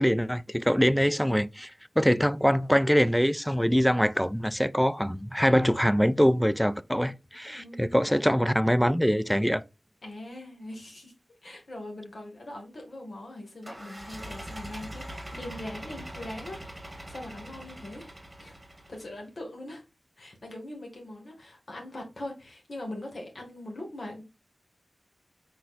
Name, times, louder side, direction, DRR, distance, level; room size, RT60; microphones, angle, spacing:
voice 1, 0.0-1.7 2.0-9.6, equal, 5° left, 0.3 m, -24 dB
voice 2, 7.5-8.0 10.0-11.1 11.4-18.1 18.4-18.6 18.9-19.8 20.2-24.3, left 1 dB, 70° left, 1.8 m, -41 dB
sound 1, 13.6-19.2, right 1 dB, 20° right, 1.5 m, -42 dB
4.4 x 4.1 x 2.4 m
wide cardioid pair, 55°, 0 cm